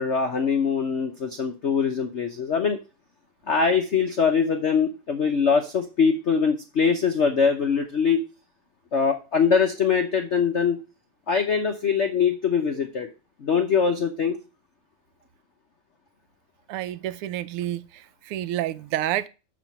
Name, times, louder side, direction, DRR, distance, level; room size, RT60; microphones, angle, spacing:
voice 1, 0.0-2.8 3.5-8.2 8.9-10.8 11.3-13.1 13.4-14.4, left 6 dB, 75° left, 0.6 m, -22 dB
voice 2, 16.7-19.3, right 13 dB, 90° right, 1.6 m, -29 dB
7.0 x 4.9 x 6.0 m
omnidirectional pair, 2.4 m